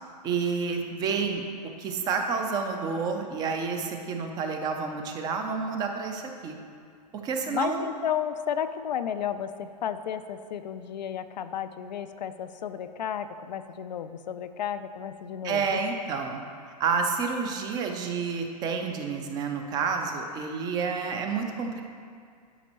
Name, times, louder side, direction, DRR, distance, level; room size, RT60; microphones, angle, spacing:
voice 1, 0.2-1.4 1.8-6.6 7.1-7.9 15.4-16.4 16.8-21.8, right 5 dB, 20° right, 4 dB, 0.4 m, -29 dB
voice 2, 7.5-15.8, left 9 dB, 85° left, 10 dB, 0.5 m, -33 dB
11.5 x 5.1 x 3.0 m, 2.2 s
hypercardioid pair, 145°, 21 cm